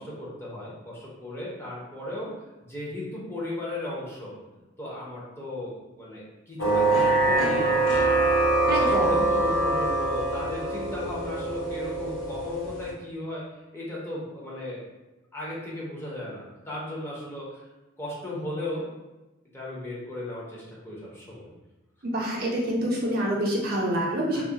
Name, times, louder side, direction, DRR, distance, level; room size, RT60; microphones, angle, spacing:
voice 1, 0.0-2.3 2.6-4.4 4.8-8.0 8.6-13.5 13.7-14.8 15.3-17.7 18.0-18.9 19.5-21.5 24.3-24.4, left 1 dB, 10° left, -6 dB, 0.5 m, -36 dB
sound 1, 6.6-12.9, right 2 dB, 75° left, 0.5 m, -24 dB
voice 2, 8.7-9.3 22.0-24.4, right 1 dB, 50° right, -4 dB, 0.5 m, -27 dB
2.3 x 2.1 x 2.6 m, 1.1 s
head